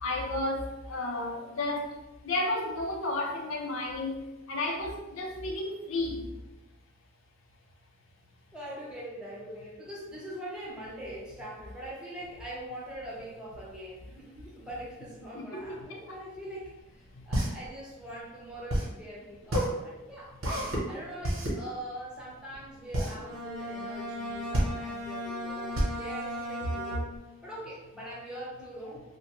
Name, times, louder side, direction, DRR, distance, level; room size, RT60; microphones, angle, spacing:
voice 1, 0.0-1.9 2.2-4.1 4.5-6.3 15.3-16.2 26.6-26.7, left 2 dB, 70° left, 1 dB, 0.5 m, -32 dB
voice 2, 8.5-20.4 20.9-27.0 27.4-29.0, right 1 dB, 5° right, -6 dB, 0.7 m, -42 dB
sound 1, 16.8-27.2, equal, 80° right, 1.0 m, -31 dB
Bowed string instrument, 23.2-27.4, equal, 60° right, 0.6 m, -37 dB
2.5 x 2.1 x 2.9 m, 1.0 s
head